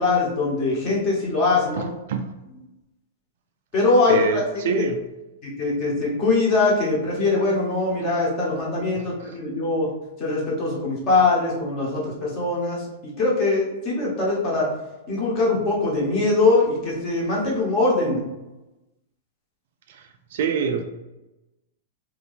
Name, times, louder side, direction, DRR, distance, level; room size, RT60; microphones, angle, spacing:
voice 1, 0.0-1.9 3.7-4.9 5.4-9.9 10.2-14.7 15.1-18.3, left 3 dB, 25° left, -4 dB, 1.0 m, -22 dB
voice 2, 1.8-2.3 4.1-5.0 9.2-9.4 19.9-20.8, right 6 dB, 50° right, 6 dB, 0.3 m, -26 dB
2.7 x 2.6 x 3.5 m, 1.0 s
supercardioid pair, 180°, 0 cm